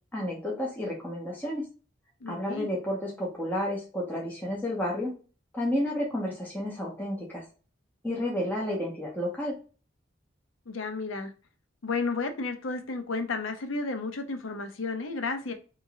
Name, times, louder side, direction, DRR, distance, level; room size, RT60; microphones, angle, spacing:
voice 1, 0.1-1.6 2.3-5.1 5.5-7.4 8.0-9.5, left 1 dB, 10° left, -4 dB, 0.9 m, -31 dB
voice 2, 2.2-2.7 10.7-11.3 11.8-15.5, left 3 dB, 85° left, 7 dB, 0.6 m, -32 dB
3.7 x 2.9 x 2.7 m, 0.35 s
head